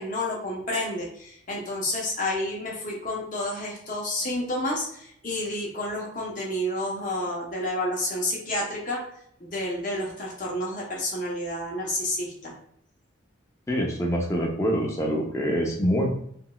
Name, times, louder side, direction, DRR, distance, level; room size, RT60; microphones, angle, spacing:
voice 1, 0.0-9.0 9.4-12.5, left 1 dB, 40° left, -3 dB, 0.8 m, -30 dB
voice 2, 13.7-16.1, equal, 15° left, -1 dB, 0.5 m, -25 dB
3.7 x 2.4 x 2.2 m, 0.68 s
head